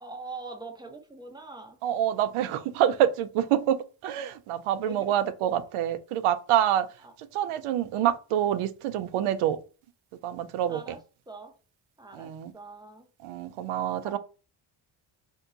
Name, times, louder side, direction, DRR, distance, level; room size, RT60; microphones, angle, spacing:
voice 1, 0.0-1.8 4.9-5.2 7.0-7.1 10.7-11.0 11.3-11.5 12.0-13.1 14.0-14.2, right 3 dB, 10° right, 0.7 m, -43 dB
voice 2, 1.8-6.9 7.2-9.6 10.2-11.0 12.1-12.5 13.2-14.2, right 11 dB, 80° right, 0.6 m, -26 dB
2.7 x 2.3 x 3.9 m
cardioid pair, 75°, 50 cm